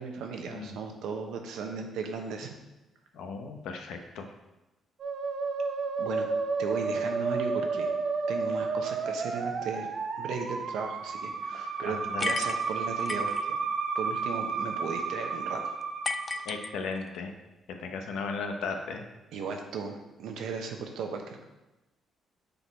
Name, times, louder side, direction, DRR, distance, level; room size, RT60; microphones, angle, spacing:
voice 1, 0.0-2.6 6.0-6.3 6.6-7.9 8.3-9.9 10.2-13.6 13.9-15.7 16.3-16.5 19.3-21.4, right 5 dB, 80° right, 4 dB, 0.9 m, -36 dB
voice 2, 3.1-4.2 11.8-12.3 16.5-17.3 17.8-19.0, left 4 dB, 85° left, 4 dB, 0.8 m, -36 dB
Musical instrument, 5.0-16.8, right 4 dB, 55° right, 0.8 m, -32 dB
sound 1, 12.2-13.4 16.0-17.2, left 4 dB, 30° left, 0.3 m, -34 dB
6.9 x 4.0 x 4.5 m, 1.0 s
cardioid pair, 90°, 0 cm